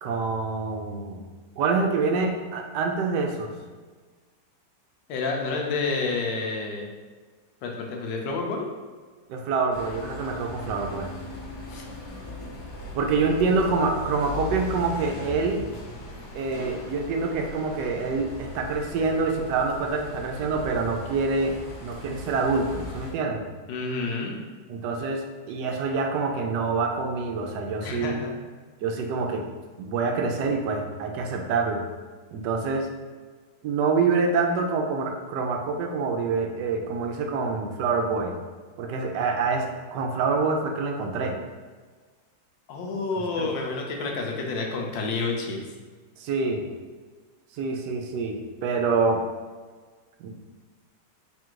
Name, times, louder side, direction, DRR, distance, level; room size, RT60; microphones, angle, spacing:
voice 1, 0.0-1.2 1.6-3.5 9.3-11.1 12.9-15.6 16.3-23.4 24.7-28.2 28.8-29.5 29.8-31.8 32.3-32.9 33.6-38.3 38.8-41.4 43.4-43.5 46.2-46.6 47.5-49.2 50.2-50.3, right 4 dB, 75° right, 3 dB, 1.2 m, -26 dB
voice 2, 5.1-6.9 7.6-8.7 11.7-11.8 23.7-24.3 27.8-28.3 42.7-45.6, left 3 dB, 90° left, 0 dB, 1.4 m, -29 dB
sound 1, 9.7-23.1, left 1 dB, 65° left, 1.4 m, -39 dB
3.5 x 2.5 x 4.5 m, 1.4 s
omnidirectional pair, 1.9 m